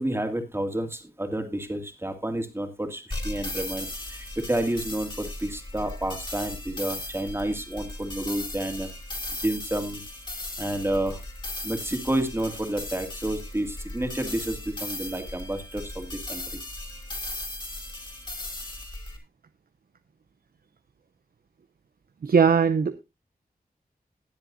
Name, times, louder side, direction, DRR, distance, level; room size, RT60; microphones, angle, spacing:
voice 1, 0.0-8.9 9.4-10.0 10.6-11.2 11.6-16.6, right 1 dB, 15° right, 5 dB, 2.4 m, -30 dB
sound 1, 3.1-19.2, left 1 dB, 30° left, 3.7 m, -37 dB
voice 2, 22.2-23.0, right 6 dB, 65° right, 11 dB, 0.7 m, -20 dB
20.5 x 7.6 x 2.6 m, 0.24 s
wide cardioid pair, 85°, 16 cm